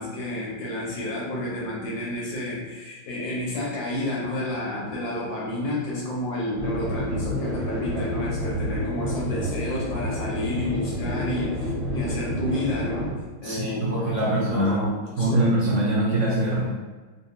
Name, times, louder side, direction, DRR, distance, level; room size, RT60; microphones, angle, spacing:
voice 1, 0.0-13.1 13.4-15.4, left 1 dB, 85° left, -5 dB, 1.7 m, -30 dB
sound 1, 6.6-13.1, left 1 dB, 20° left, 1.0 m, -29 dB
voice 2, 13.4-14.9 15.2-16.7, right 1 dB, 60° right, -6 dB, 0.9 m, -23 dB
3.9 x 2.2 x 2.7 m, 1.3 s
omnidirectional pair, 2.0 m